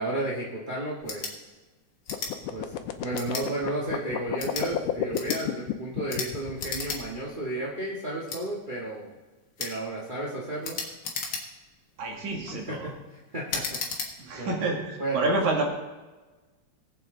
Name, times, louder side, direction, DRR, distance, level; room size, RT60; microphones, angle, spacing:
voice 1, 0.0-1.4 2.5-2.7 3.0-9.1 9.6-10.8 12.5-13.8 14.4-14.6 15.0-15.3, right 1 dB, 25° right, -5 dB, 1.0 m, -33 dB
sound 1, 1.0-1.3 2.0-2.3 3.1-3.5 4.3-4.7 5.1-5.4 6.1-6.3 6.6-7.0 7.3-7.4 8.3-8.4 9.6-9.8 10.6-11.7 12.2-12.6 13.5-14.1, left 4 dB, 45° left, 1.8 m, -34 dB
sound 2, 2.1-7.3, left 12 dB, 80° left, 2.2 m, -31 dB
voice 2, 12.0-12.9 14.2-15.7, right 2 dB, 70° right, 1 dB, 3.2 m, -28 dB
19.5 x 7.9 x 3.8 m, 1.2 s
omnidirectional pair, 3.6 m